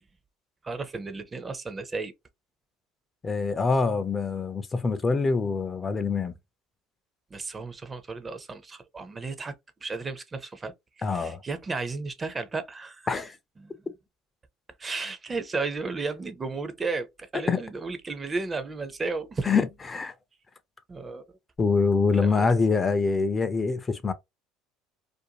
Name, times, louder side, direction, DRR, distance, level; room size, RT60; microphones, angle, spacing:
voice 1, 0.6-2.1 7.3-9.6 9.8-13.1 13.6-13.9 14.8-19.5 20.9-21.4 22.1-22.5, right 3 dB, 25° right, 0.5 m, -34 dB
voice 2, 3.2-6.3 11.0-11.4 13.1-13.4 17.5-17.6 19.5-20.1 21.6-24.1, left 4 dB, 25° left, 0.4 m, -25 dB
2.5 x 2.1 x 2.8 m
supercardioid pair, 90°, 0 cm